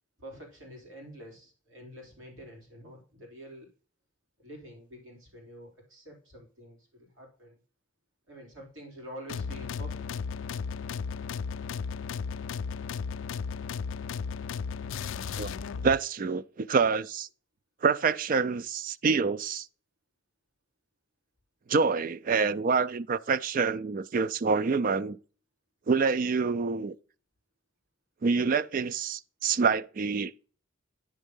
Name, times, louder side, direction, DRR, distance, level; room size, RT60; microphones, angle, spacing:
voice 1, 0.2-3.7 4.4-7.6 8.3-10.0, equal, 70° right, 3.6 m, -47 dB
sound 1, 9.3-16.0, left 5 dB, 70° left, 0.4 m, -35 dB
voice 2, 15.8-17.3 17.8-19.7 21.7-25.2 25.9-26.9 28.2-30.5, right 5 dB, 40° right, 0.3 m, -27 dB
10.0 x 3.6 x 5.3 m
head